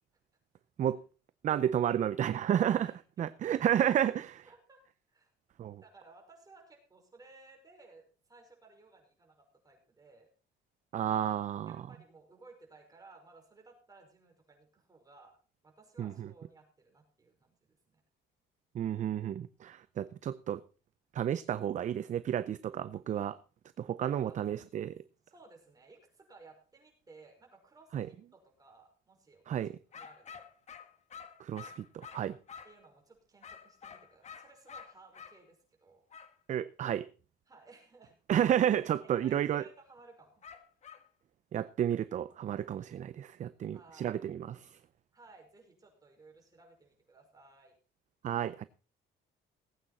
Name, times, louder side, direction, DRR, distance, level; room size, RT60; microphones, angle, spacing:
voice 1, 1.4-2.9 3.2-4.4 5.6-5.8 10.9-11.7 16.0-16.1 18.7-20.6 21.1-23.4 23.8-25.0 27.9-28.1 29.5-29.7 31.4-32.4 36.5-37.1 38.3-39.6 41.5-44.7 48.2-48.6, right 10 dB, 40° right, 0.6 m, -31 dB
voice 2, 2.7-3.0 4.5-5.3 5.8-10.3 11.7-15.4 15.6-18.0 24.0-24.4 25.2-29.6 29.9-30.5 32.6-36.0 37.5-38.2 39.0-40.4 43.7-44.2 45.1-47.8, right 3 dB, 20° right, 5.5 m, -58 dB
sound 1, 29.9-32.8 33.4-35.4 36.1-36.3 40.4-41.1, left 6 dB, 35° left, 1.5 m, -49 dB
18.5 x 8.9 x 4.2 m
cardioid pair, 140°, 19 cm